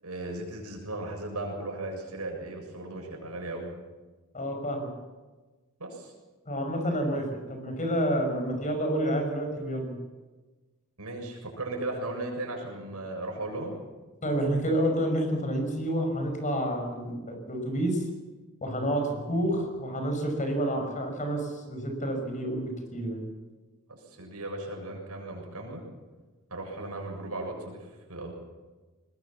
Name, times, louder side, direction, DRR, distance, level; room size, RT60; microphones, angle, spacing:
voice 1, 0.0-3.7 5.8-6.1 11.0-13.8 23.9-25.8 26.5-28.3, right 2 dB, 80° right, 2 dB, 7.1 m, -36 dB
voice 2, 4.3-4.9 6.5-10.0 14.2-18.0 18.6-23.2, right 1 dB, 35° left, 5 dB, 5.8 m, -29 dB
21.5 x 20.5 x 7.3 m, 1.2 s
head